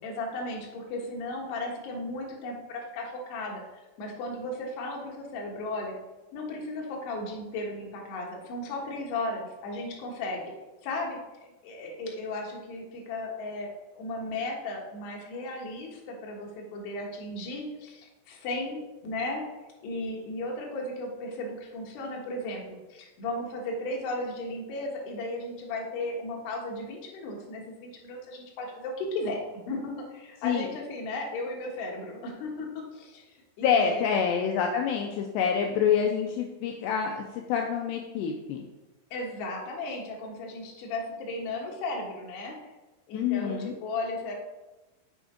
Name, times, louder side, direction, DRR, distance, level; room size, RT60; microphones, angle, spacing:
voice 1, 0.0-6.0 6.3-10.5 10.8-11.2 11.6-19.4 19.8-29.4 29.7-34.0 39.1-42.7 43.1-44.4, left 2 dB, 65° left, -1 dB, 3.2 m, -35 dB
voice 2, 33.6-38.6 43.1-43.7, left 7 dB, 90° left, 3 dB, 2.4 m, -27 dB
6.9 x 6.2 x 5.1 m, 1.1 s
omnidirectional pair, 5.7 m